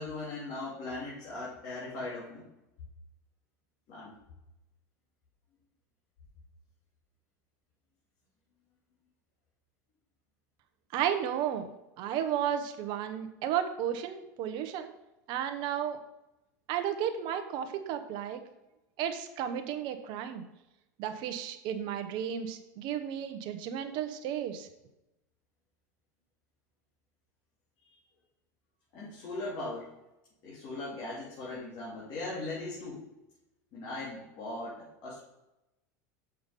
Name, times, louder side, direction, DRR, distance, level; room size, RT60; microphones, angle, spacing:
voice 1, 0.0-2.4 3.9-4.1 28.9-29.9 30.4-33.0 33.7-35.2, left 2 dB, 55° left, -7 dB, 3.3 m, -39 dB
voice 2, 10.9-11.7 12.0-14.9 15.3-16.0 16.7-18.4 19.0-20.4 21.0-24.7, right 9 dB, 55° right, 7 dB, 1.0 m, -33 dB
6.8 x 5.7 x 5.3 m, 0.91 s
hypercardioid pair, 100°, 9 cm